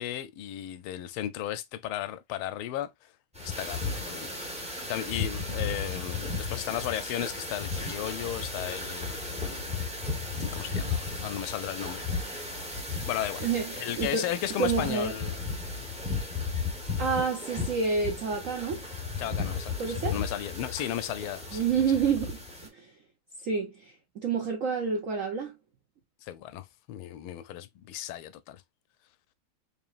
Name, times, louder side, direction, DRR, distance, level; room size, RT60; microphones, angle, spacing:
voice 1, 0.0-2.9 3.4-4.3 4.9-9.6 10.4-12.1 13.0-13.4 13.8-15.5 15.7-15.9 19.2-19.7 20.0-21.6 26.2-28.6, left 12 dB, 80° left, 1.4 m, -35 dB
sound 1, 3.3-22.7, left 3 dB, 10° right, 0.4 m, -35 dB
voice 2, 13.4-14.3 14.6-15.1 17.0-18.9 19.8-20.2 21.5-22.9 23.4-25.5, right 5 dB, 90° right, 0.7 m, -29 dB
4.9 x 2.8 x 2.4 m
omnidirectional pair, 2.3 m